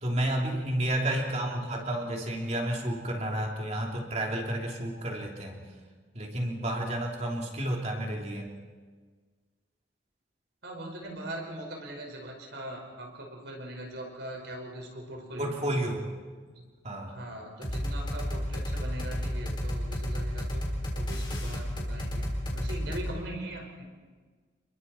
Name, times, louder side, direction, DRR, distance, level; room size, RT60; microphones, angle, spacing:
voice 1, 0.0-5.6 6.1-8.5 15.4-16.1 16.8-17.1, right 1 dB, 35° right, 0 dB, 3.1 m, -31 dB
voice 2, 1.1-1.9 10.6-15.6 16.4-16.6 17.0-23.8, right 1 dB, 65° right, 1 dB, 5.2 m, -41 dB
sound 1, 17.6-23.1, equal, 25° left, 4.4 m, -32 dB
29.5 x 22.5 x 4.4 m, 1.5 s
head